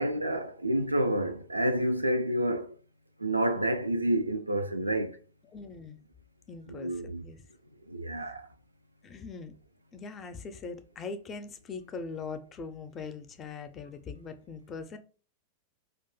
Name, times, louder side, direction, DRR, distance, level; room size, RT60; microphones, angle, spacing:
voice 1, 0.0-2.7 3.2-5.2 6.7-7.2 7.9-8.5, right 1 dB, 85° right, 0.3 m, -29 dB
voice 2, 5.5-6.0 6.5-7.4 9.0-9.5 9.9-15.0, left 4 dB, 25° left, 0.4 m, -41 dB
2.6 x 2.3 x 3.8 m
figure-of-eight pair, 90°, 0 cm